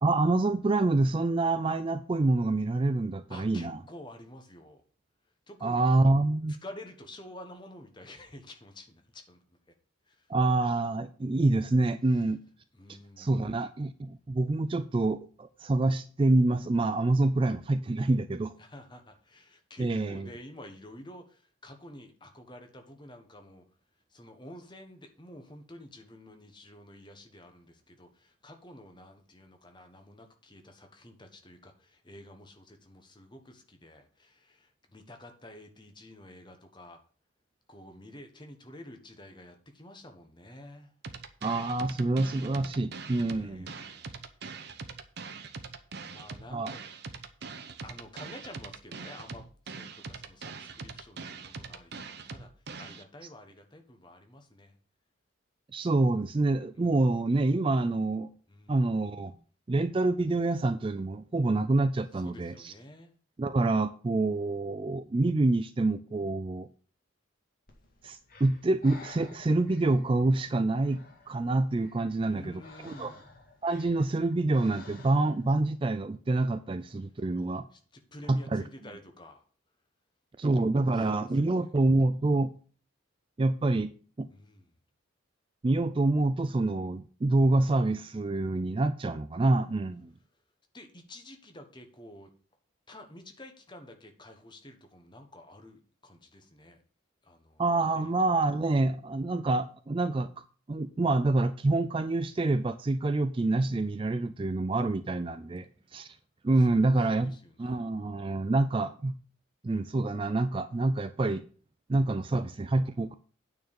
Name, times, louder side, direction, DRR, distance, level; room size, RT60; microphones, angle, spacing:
voice 1, 0.0-3.8 5.6-6.6 10.3-12.4 13.2-18.5 19.8-20.3 41.4-43.7 46.5-46.7 55.7-58.3 58.7-59.3 59.7-62.7 63.4-66.7 68.0-73.1 73.6-77.7 78.3-78.6 80.4-82.5 83.4-83.9 84.2-84.3 85.6-90.1 97.6-100.3 100.7-105.7 105.9-106.2 106.4-109.2 109.6-111.4 111.9-113.1, right 2 dB, 25° right, 11 dB, 0.3 m, -27 dB
voice 2, 3.3-4.8 5.5-5.8 6.6-9.4 10.1-10.3 12.1-12.2 12.7-13.6 17.3-17.6 18.6-23.6 24.1-37.0 37.7-40.9 43.3-44.2 46.1-46.8 47.4-47.6 47.8-54.8 56.7-57.1 58.5-58.8 62.1-63.2 72.2-73.2 77.7-79.5 80.9-81.7 84.3-84.7 87.4-87.6 90.7-92.3 92.9-96.8 97.2-97.7 97.9-98.4 106.6-107.8 108.2-108.5 112.3-112.6, left 1 dB, 20° left, 5 dB, 1.3 m, -50 dB
sound 1, 41.0-53.0, right 4 dB, 50° right, 0.9 m, -42 dB
Breathing, 67.7-75.5, left 3 dB, 45° left, 2.0 m, -53 dB
9.2 x 4.5 x 7.0 m, 0.41 s
head